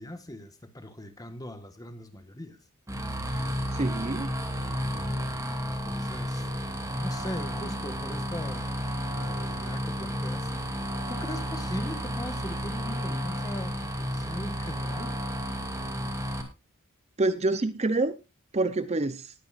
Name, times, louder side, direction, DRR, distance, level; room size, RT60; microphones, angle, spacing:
voice 1, 0.0-2.6 5.6-6.5 7.0-15.2, left 1 dB, 15° left, 1.4 m, -40 dB
sound 1, 2.9-16.4, equal, 15° right, 2.5 m, -32 dB
voice 2, 3.7-4.3 17.2-18.1 18.5-19.3, right 2 dB, 30° right, 0.7 m, -27 dB
20.0 x 9.3 x 2.5 m
head